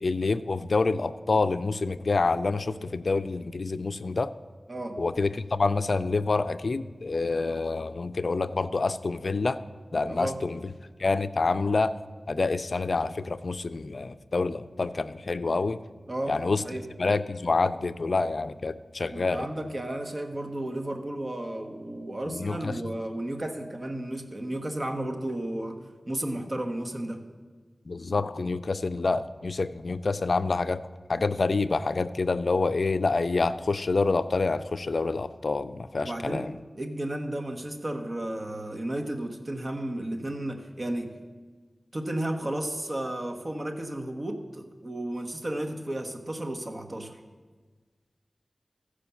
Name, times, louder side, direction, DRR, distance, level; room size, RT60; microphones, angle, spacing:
voice 1, 0.0-4.3 5.0-9.6 9.9-10.6 11.0-12.0 12.3-15.8 16.3-16.6 17.0-19.5 22.2-22.8 27.9-30.8 31.1-36.5, left 3 dB, 65° left, 13 dB, 0.4 m, -27 dB
voice 2, 4.7-5.0 10.1-10.4 16.1-16.4 16.6-16.9 19.1-27.2 36.0-36.5 36.8-41.1 41.9-47.2, right 1 dB, 35° right, 4 dB, 1.1 m, -33 dB
14.5 x 5.0 x 7.0 m, 1.4 s
wide cardioid pair, 75°, 0 cm